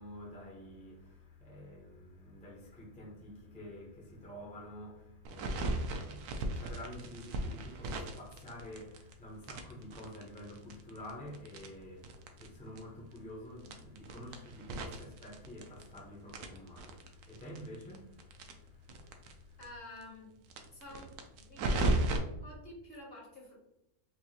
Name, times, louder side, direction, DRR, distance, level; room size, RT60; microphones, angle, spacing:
voice 1, 0.0-19.6, left 1 dB, 10° left, 0.5 m, -49 dB
sound 1, 5.2-9.1 9.4-12.5 12.8-12.9 13.1-13.2 13.6-16.0 16.3-19.3 19.6-19.7 20.0-20.1 20.5-22.2, right 2 dB, 75° right, 1.1 m, -36 dB
voice 2, 19.6-20.3 20.7-21.1 21.4-22.0 22.4-23.6, left 1 dB, 45° left, 1.0 m, -49 dB
4.6 x 2.6 x 2.8 m
omnidirectional pair, 1.7 m